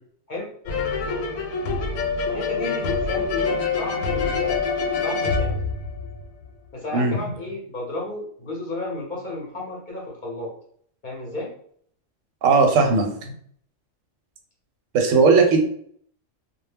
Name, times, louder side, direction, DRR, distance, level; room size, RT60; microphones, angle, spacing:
sound 1, 0.7-6.4, left 4 dB, 90° left, 1.0 m, -25 dB
voice 1, 2.2-4.6 5.0-5.7 6.7-10.5 11.0-11.5, left 2 dB, 50° left, -3 dB, 0.6 m, -32 dB
voice 2, 12.4-13.1 14.9-15.6, right 4 dB, 85° right, 3 dB, 1.0 m, -17 dB
2.2 x 2.0 x 3.2 m, 0.62 s
omnidirectional pair, 1.3 m